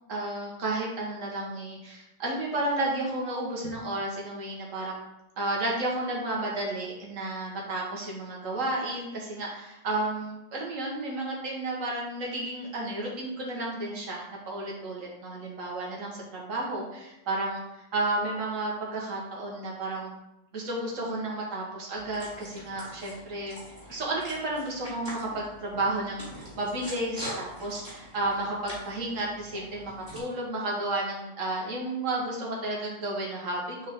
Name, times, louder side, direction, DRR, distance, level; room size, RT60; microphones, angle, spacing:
voice 1, 0.1-5.0 5.4-20.1 20.5-23.6 23.9-33.9, right 2 dB, 55° right, -3 dB, 1.9 m, -32 dB
sound 1, 21.9-30.2, equal, 25° right, 2.5 m, -44 dB
6.9 x 4.7 x 3.8 m, 0.90 s
omnidirectional pair, 1.6 m